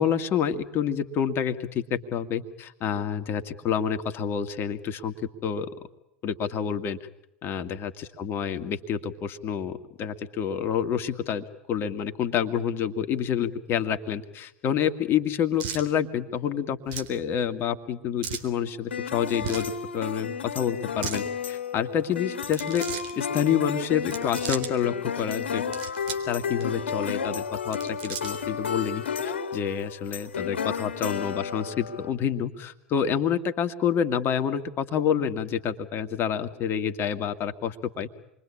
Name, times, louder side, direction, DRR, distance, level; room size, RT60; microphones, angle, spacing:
voice 1, 0.0-5.1 5.4-5.7 6.2-7.0 7.4-22.8 23.2-25.6 26.2-38.1, left 8 dB, 40° left, 8 dB, 2.1 m, -28 dB
sound 1, 15.6-15.9 16.9-17.1 18.2-18.5 19.3-19.7 20.8-21.2 22.4-23.1 24.0-24.7 25.5-26.3 26.6-26.7 27.5-28.5, right 7 dB, 60° right, 3.7 m, -36 dB
sound 2, 18.9-32.1, left 6 dB, 75° left, 2.5 m, -32 dB
28.0 x 22.5 x 8.7 m, 0.81 s
figure-of-eight pair, 85°, 6 cm